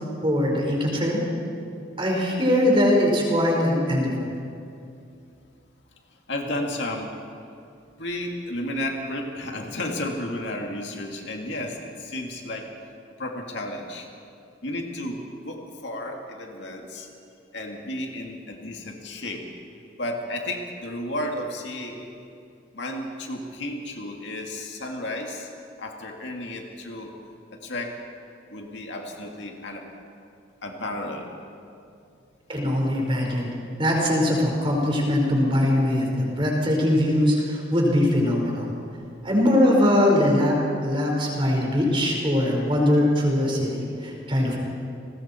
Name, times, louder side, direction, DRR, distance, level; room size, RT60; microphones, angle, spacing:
voice 1, 0.2-1.2 2.0-4.2 32.5-33.5 33.8-38.7 39.2-40.5 40.8-44.6, left 1 dB, 25° right, -1 dB, 4.6 m, -21 dB
voice 2, 6.3-7.1 8.0-12.7 13.2-14.1 14.6-17.1 17.5-19.4 20.0-22.1 22.7-25.5 25.8-27.1 27.5-28.0 28.5-29.9 30.6-31.3, left 1 dB, 60° left, 1 dB, 2.3 m, -32 dB
30.0 x 20.0 x 4.4 m, 2.5 s
head